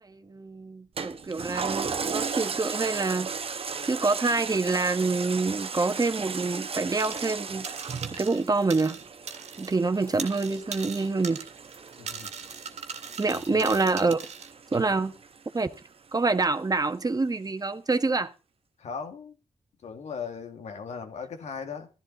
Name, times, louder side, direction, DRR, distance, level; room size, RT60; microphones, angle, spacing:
voice 1, 0.0-3.3 3.8-7.7 8.2-9.0 9.6-11.4 13.2-14.2 14.7-15.1 15.5-15.7 16.1-18.3, right 3 dB, 35° right, 1.4 m, -26 dB
Toilet flush, 1.0-15.8 16.3-16.4, right 5 dB, 55° right, 1.2 m, -36 dB
sound 1, 7.0-7.4 7.6-9.8 10.0-14.5, right 6 dB, 85° right, 2.0 m, -40 dB
voice 2, 12.0-12.3 13.2-13.8 18.8-19.4 19.8-21.9, left 6 dB, 85° left, 2.1 m, -38 dB
15.0 x 11.5 x 4.0 m
cardioid pair, 65°, 11 cm